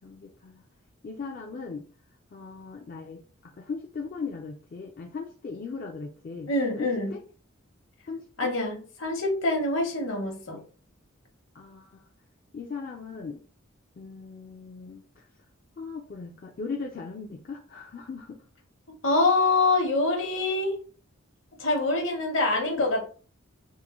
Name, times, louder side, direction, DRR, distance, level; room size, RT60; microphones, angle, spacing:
voice 1, 0.0-0.6 1.0-1.8 2.3-3.2 3.6-6.5 6.8-7.2 8.1-8.5 10.5-10.7 11.6-11.9 12.5-13.4 14.0-15.0 15.8-18.4 22.4-22.9, left 4 dB, 45° left, 1 dB, 0.3 m, -38 dB
voice 2, 6.5-7.1 8.4-10.6 19.0-20.7 21.6-23.1, left 2 dB, 65° left, 2 dB, 1.0 m, -25 dB
3.6 x 2.1 x 3.0 m, 0.40 s
head